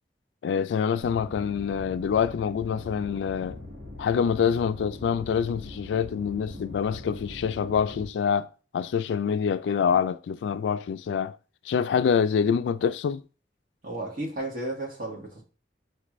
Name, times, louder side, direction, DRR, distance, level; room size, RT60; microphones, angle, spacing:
voice 1, 0.4-3.6 4.0-8.5 8.7-11.4 11.7-13.2, left 7 dB, 90° left, 0.3 m, -26 dB
sound 1, 1.0-8.1, left 2 dB, 80° right, 1.4 m, -42 dB
voice 2, 13.8-15.4, right 1 dB, 50° right, 1.5 m, -33 dB
5.2 x 2.5 x 3.0 m
head